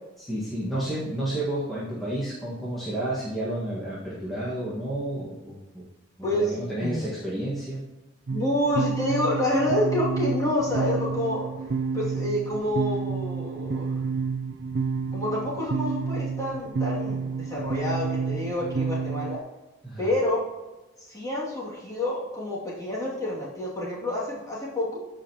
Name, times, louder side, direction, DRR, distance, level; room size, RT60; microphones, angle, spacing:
voice 1, 0.2-5.8 6.3-7.8 19.8-20.0, right 1 dB, ahead, -10 dB, 1.6 m, -31 dB
voice 2, 6.2-7.1 8.3-11.5 11.9-14.0 15.1-19.4 20.0-20.4 21.0-25.0, left 1 dB, 15° left, -6 dB, 2.5 m, -28 dB
sound 1, 8.3-19.4, right 5 dB, 55° right, 0.4 m, -30 dB
13.5 x 5.0 x 3.0 m, 1.1 s
head